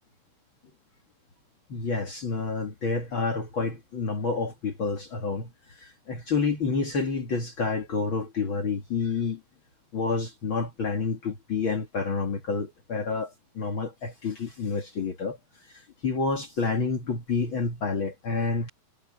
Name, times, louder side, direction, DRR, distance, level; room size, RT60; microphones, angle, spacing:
voice 1, 1.7-9.4 9.9-15.4 15.7-18.7, left 4 dB, 80° left, 1.1 m, -29 dB
omnidirectional pair, 5.9 m